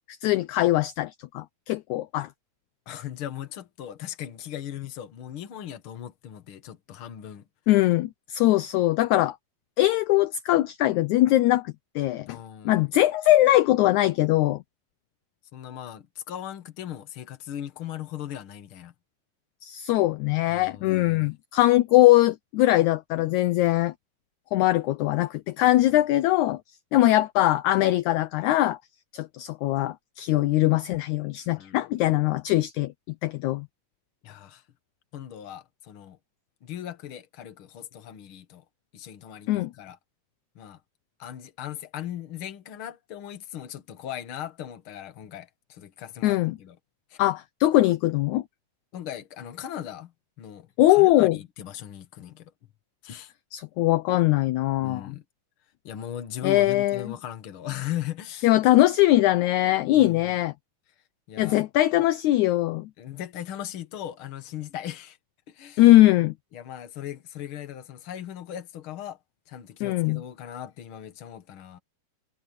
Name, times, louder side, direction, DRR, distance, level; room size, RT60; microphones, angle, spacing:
voice 1, 0.2-2.3 7.7-9.4 9.8-12.4 12.7-14.6 19.6-23.9 24.5-26.6 26.9-28.8 29.1-32.9 33.2-33.7 39.5-39.7 46.2-46.6 47.2-48.4 50.8-51.4 53.5-55.2 56.4-57.1 58.4-60.5 61.4-62.9 65.8-66.3 69.8-70.2, left 16 dB, 75° left, 1.9 m, -21 dB
voice 2, 2.9-7.5 12.3-12.9 15.5-18.9 20.5-21.3 31.6-31.8 34.2-34.6 35.1-36.2 36.6-38.6 38.9-40.0 40.6-40.8 41.2-46.8 47.1-47.2 48.9-52.5 53.0-53.3 54.8-55.2 55.8-58.5 59.9-60.4 61.3-61.6 63.0-65.2 65.5-65.9 66.5-69.2 69.5-71.8, left 11 dB, 50° left, 1.9 m, -38 dB
omnidirectional pair, 3.8 m